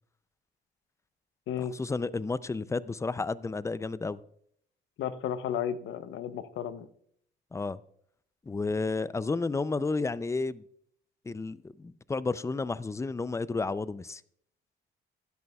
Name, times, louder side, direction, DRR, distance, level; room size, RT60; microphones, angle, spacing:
voice 1, 1.6-4.2 7.5-7.8 8.5-10.6 11.3-14.2, left 3 dB, 15° left, 0.4 m, -32 dB
voice 2, 5.0-6.9, left 9 dB, 75° left, 0.8 m, -33 dB
15.0 x 10.5 x 2.3 m
cardioid pair, 90°, 20 cm